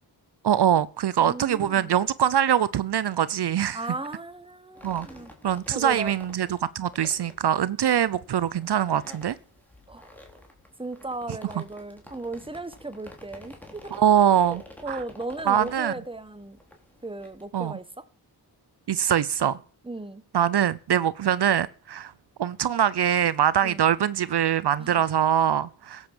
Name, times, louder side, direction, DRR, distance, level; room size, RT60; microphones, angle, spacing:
voice 1, 0.4-3.8 4.8-5.1 5.4-6.5 6.7-9.3 13.9-14.6 14.9-15.0 15.5-15.9 17.5-17.7 18.9-19.6 20.3-22.1 22.4-26.1, right 9 dB, 70° right, 0.6 m, -23 dB
voice 2, 1.2-2.0 3.7-5.3 5.7-6.1 9.9-10.1 10.8-13.9 14.5-16.6 17.0-18.0 19.8-20.2 23.6-23.8 24.8-25.1, right 2 dB, 10° right, 1.2 m, -36 dB
sound 1, 4.7-17.5, left 1 dB, 5° left, 3.2 m, -49 dB
16.5 x 7.9 x 7.1 m
wide cardioid pair, 105°, 42 cm